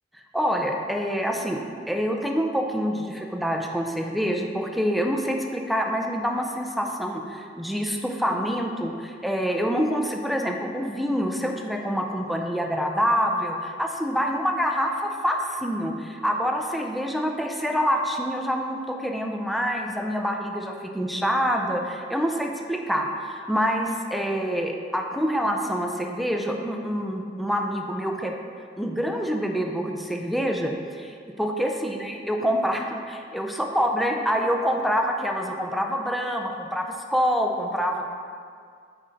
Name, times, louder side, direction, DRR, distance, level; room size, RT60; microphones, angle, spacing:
voice 1, 0.3-28.3 28.8-36.9 37.1-38.0, equal, ahead, 1 dB, 0.5 m, -26 dB
8.5 x 5.0 x 3.9 m, 2.1 s
head